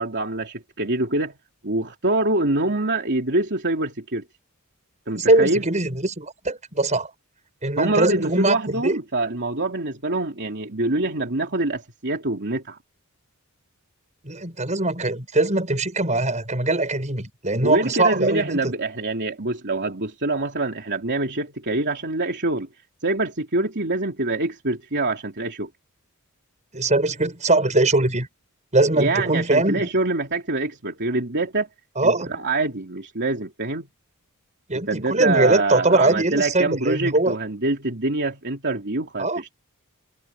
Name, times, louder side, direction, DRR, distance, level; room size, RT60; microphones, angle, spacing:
voice 1, 0.0-1.3 1.6-4.2 5.1-5.6 7.8-12.8 17.6-22.7 23.0-25.7 29.0-31.7 32.0-33.9 34.9-39.5, right 2 dB, 50° right, 3.2 m, -25 dB
voice 2, 5.2-7.1 7.6-9.0 14.2-18.6 26.7-28.3 28.7-29.9 32.0-32.3 34.7-37.3 39.2-39.4, right 2 dB, 35° right, 5.7 m, -21 dB
head